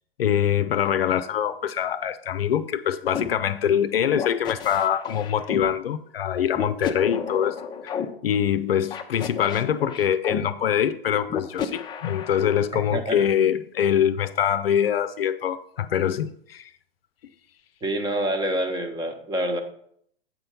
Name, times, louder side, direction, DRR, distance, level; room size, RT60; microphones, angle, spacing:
voice 1, 0.2-16.7, left 9 dB, 70° left, 0.6 m, -24 dB
sound 1, 3.1-3.3 4.2-5.7 6.5-8.1 8.9-10.4 11.3-12.6, left 7 dB, 15° left, 0.6 m, -31 dB
voice 2, 17.8-19.6, right 1 dB, 15° right, 0.9 m, -26 dB
8.5 x 4.4 x 5.5 m
figure-of-eight pair, 110°, 31 cm